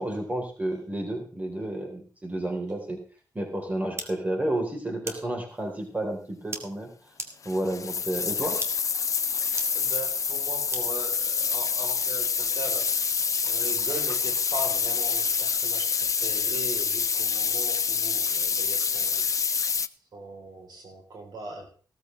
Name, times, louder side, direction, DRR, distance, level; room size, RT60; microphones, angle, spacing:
voice 1, 0.0-3.0 3.3-6.9 7.5-8.6, right 1 dB, 20° right, 2 dB, 3.6 m, -31 dB
sound 1, 4.0-4.1 5.1-5.2 6.5-6.6 7.2-7.3 8.3-8.4 8.6-8.7 9.6-9.7 10.7-10.8, right 2 dB, 40° right, 2.0 m, -33 dB
sound 2, 7.4-19.9, left 6 dB, 50° left, 0.5 m, -27 dB
voice 2, 9.4-13.2 13.4-19.3 20.1-21.7, right 2 dB, 75° right, 2 dB, 3.5 m, -39 dB
15.5 x 13.5 x 3.2 m, 0.40 s
wide cardioid pair, 110°, 7 cm